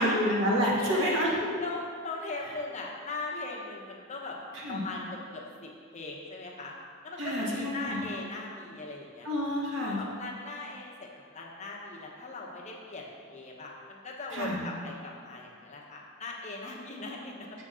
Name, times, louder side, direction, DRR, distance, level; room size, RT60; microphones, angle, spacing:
voice 1, 0.0-1.6 4.5-4.8 7.2-8.1 9.2-10.0 14.3-14.7, equal, 65° right, -5 dB, 1.6 m, -28 dB
voice 2, 0.8-1.2 1.6-4.4 4.7-6.7 7.0-9.3 9.8-17.6, left 3 dB, 35° left, -2 dB, 0.9 m, -39 dB
7.2 x 6.8 x 3.7 m, 2.1 s
head